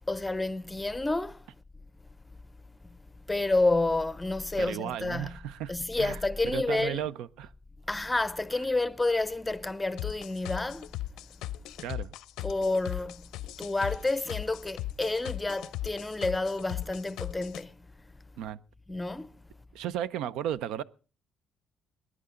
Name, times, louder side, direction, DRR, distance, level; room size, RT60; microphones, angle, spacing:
voice 1, 0.1-1.4 3.3-5.4 5.7-7.0 7.9-10.9 12.4-13.3 13.6-17.7 18.9-19.3, left 2 dB, 10° left, 0.6 m, -29 dB
voice 2, 4.6-7.5 11.8-12.1 18.4-18.6 19.7-20.8, right 10 dB, 90° right, 0.6 m, -35 dB
sound 1, 10.0-17.6, left 15 dB, 90° left, 0.6 m, -37 dB
20.5 x 11.0 x 3.7 m
cardioid pair, 150°, 0 cm